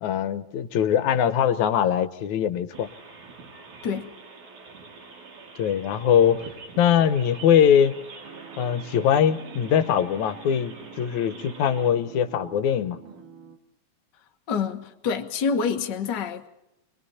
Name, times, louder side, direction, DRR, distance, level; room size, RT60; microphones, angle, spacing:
voice 1, 0.0-2.9 5.6-6.5 6.8-7.9 8.6-13.0, left 9 dB, 75° left, 2.4 m, -22 dB
sound 1, 2.7-11.9, right 4 dB, 70° right, 3.9 m, -45 dB
sound 2, 8.2-13.6, right 7 dB, 90° right, 3.3 m, -46 dB
voice 2, 14.5-16.5, left 6 dB, 45° left, 1.6 m, -27 dB
29.5 x 22.0 x 4.3 m
omnidirectional pair, 3.5 m